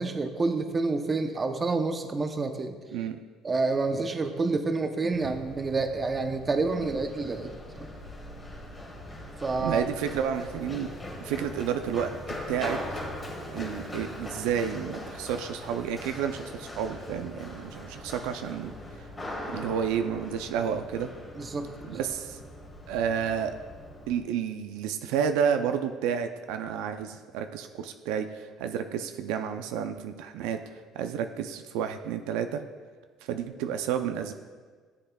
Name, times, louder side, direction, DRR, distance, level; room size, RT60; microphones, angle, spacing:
voice 1, 0.0-2.8 3.4-7.9 9.4-9.8 21.4-21.7, right 3 dB, 25° right, 7 dB, 0.7 m, -28 dB
Run, 5.1-24.2, left 1 dB, 20° left, 1.6 m, -41 dB
voice 2, 9.6-10.9 11.2-12.8 13.5-18.7 19.4-21.1 21.9-22.4 22.9-23.6 24.1-32.6 33.2-34.3, right 8 dB, 90° right, 7 dB, 0.4 m, -30 dB
12.0 x 7.8 x 2.3 m, 1.5 s
cardioid pair, 115°, 0 cm